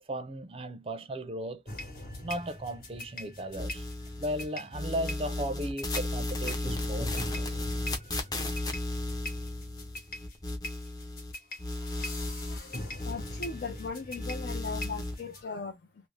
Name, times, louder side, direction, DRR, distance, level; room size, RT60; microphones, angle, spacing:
voice 1, 0.0-1.6 2.2-3.9 4.2-7.7 8.4-8.5, right 1 dB, 30° right, 0.4 m, -36 dB
sound 1, 1.7-15.4, left 1 dB, 50° left, 1.1 m, -42 dB
sound 2, 3.6-4.5 4.7-11.3 11.6-13.9 14.1-15.1, left 1 dB, 20° left, 0.5 m, -35 dB
voice 2, 12.5-15.8, left 4 dB, 70° left, 0.5 m, -39 dB
2.6 x 2.0 x 3.2 m
head